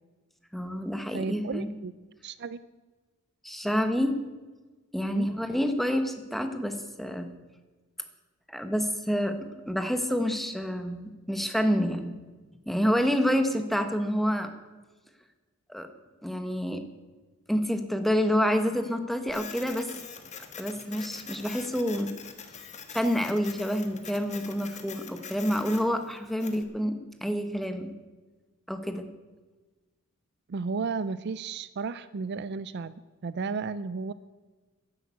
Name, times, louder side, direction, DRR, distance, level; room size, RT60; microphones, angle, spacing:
voice 1, 0.5-1.7 3.4-4.2 4.9-7.3 8.5-12.1 12.7-14.5 15.7-15.9 16.2-16.8 17.5-19.9 20.6-22.1 22.9-27.9 28.7-29.1, equal, ahead, 7 dB, 1.1 m, -28 dB
voice 2, 1.1-1.9 2.2-2.6 5.0-5.3 30.5-34.1, right 4 dB, 50° right, 15 dB, 0.4 m, -33 dB
Printer, 19.3-26.6, left 6 dB, 35° left, 1.3 m, -44 dB
11.0 x 11.0 x 8.3 m, 1.3 s
head